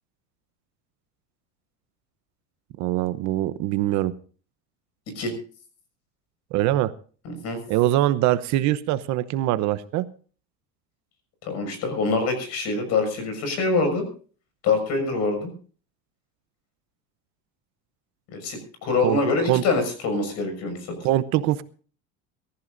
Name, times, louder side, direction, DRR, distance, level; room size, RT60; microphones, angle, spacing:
voice 1, 2.8-4.1 6.5-6.9 7.7-10.0 19.0-19.2 19.5-19.6 21.0-21.6, right 14 dB, 55° right, 14 dB, 0.9 m, -23 dB
voice 2, 7.2-7.6 11.4-14.1 14.6-15.5 18.3-21.0, left 3 dB, 50° left, 8 dB, 6.5 m, -25 dB
23.5 x 14.5 x 2.6 m, 0.40 s
cardioid pair, 150°, 34 cm